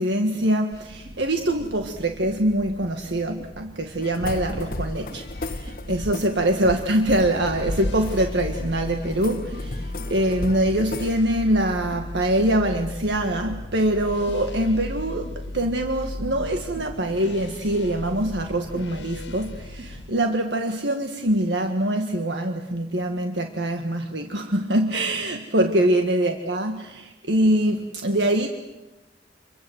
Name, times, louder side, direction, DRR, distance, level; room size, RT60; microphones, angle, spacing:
voice 1, 0.0-28.5, right 1 dB, 70° right, 5 dB, 1.7 m, -24 dB
sound 1, 0.7-20.1, equal, 35° right, 3.1 m, -43 dB
sound 2, 4.0-11.2, left 2 dB, 50° left, 1.2 m, -34 dB
sound 3, 7.2-20.0, left 1 dB, 80° left, 1.8 m, -36 dB
28.0 x 23.5 x 8.0 m, 1.1 s
head